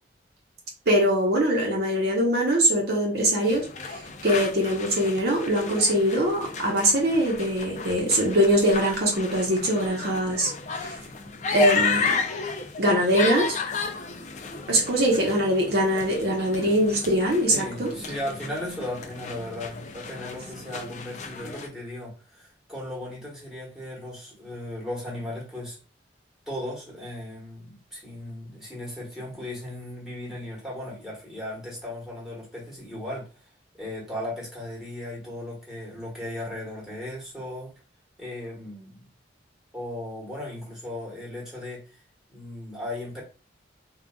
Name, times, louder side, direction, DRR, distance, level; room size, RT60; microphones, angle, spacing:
voice 1, 0.9-10.5 10.8-10.9 11.5-12.1 12.8-13.6 14.7-17.9, equal, 55° right, -2 dB, 0.8 m, -22 dB
sound 1, 3.4-21.7, left 5 dB, 40° left, 0.4 m, -33 dB
voice 2, 17.5-25.8 26.5-33.3 33.7-37.7 38.2-39.1 39.7-41.8 42.3-43.2, left 1 dB, 5° right, -3 dB, 1.2 m, -36 dB
3.8 x 2.3 x 2.2 m, 0.34 s
head